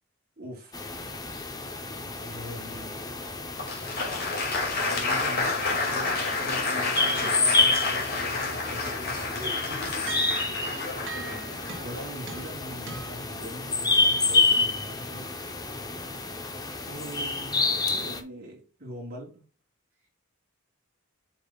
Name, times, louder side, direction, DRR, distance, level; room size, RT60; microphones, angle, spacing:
voice 1, 0.4-0.8 2.2-3.0 4.8-9.8 11.8-15.5 16.8-19.4, equal, 45° right, 3.9 m, -42 dB
sound 1, 0.7-18.2, left 3 dB, 20° left, 0.8 m, -29 dB
Applause, 3.6-12.5, left 3 dB, 45° left, 2.3 m, -30 dB
sound 2, 7.8-8.4 8.7-8.8 9.8-10.6 11.1-12.0 12.3-12.6 12.9-13.3, right 4 dB, 60° right, 1.9 m, -41 dB
voice 2, 9.7-10.7 20.0-20.1, left 2 dB, 10° right, 3.2 m, -47 dB
8.3 x 6.1 x 2.4 m
head